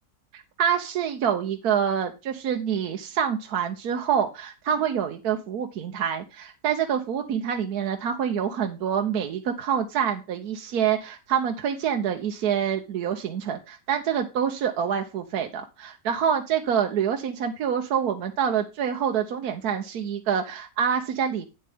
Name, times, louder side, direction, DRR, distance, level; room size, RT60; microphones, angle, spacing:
voice 1, 0.3-21.5, right 8 dB, 75° right, 5 dB, 1.3 m, -26 dB
9.3 x 7.6 x 3.5 m, 0.28 s
omnidirectional pair, 1.7 m